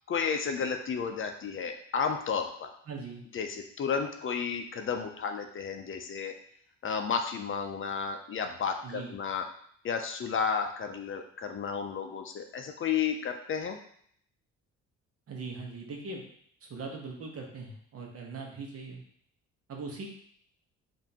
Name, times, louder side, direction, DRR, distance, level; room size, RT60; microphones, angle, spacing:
voice 1, 0.1-2.7 3.3-6.3 6.8-9.5 9.8-13.8, left 6 dB, 45° left, 5 dB, 0.5 m, -32 dB
voice 2, 2.9-3.2 8.8-9.1 15.3-16.2 16.6-19.0 19.7-20.1, right 4 dB, 50° right, 0 dB, 1.0 m, -40 dB
4.9 x 2.6 x 2.8 m, 0.64 s
cardioid pair, 90°, 30 cm